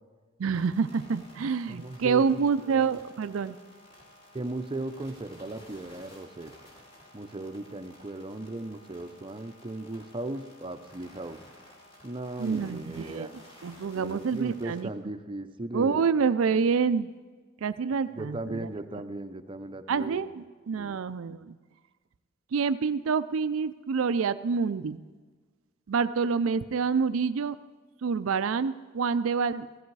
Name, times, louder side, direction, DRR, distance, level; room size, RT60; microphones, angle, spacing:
voice 1, 0.4-3.6 12.4-13.3 13.6-14.9 15.7-17.1 17.6-18.7 19.9-21.6 22.5-25.0 25.9-27.6 28.0-29.7, right 5 dB, 75° right, 12 dB, 0.4 m, -27 dB
sound 1, 0.5-14.8, left 1 dB, 30° left, 2.8 m, -54 dB
voice 2, 1.7-2.4 2.7-3.0 4.3-6.5 7.1-11.4 12.0-13.4 13.9-16.1 18.2-20.3 20.8-21.0, right 2 dB, 25° right, 8 dB, 0.6 m, -37 dB
15.5 x 13.0 x 4.7 m, 1.4 s
head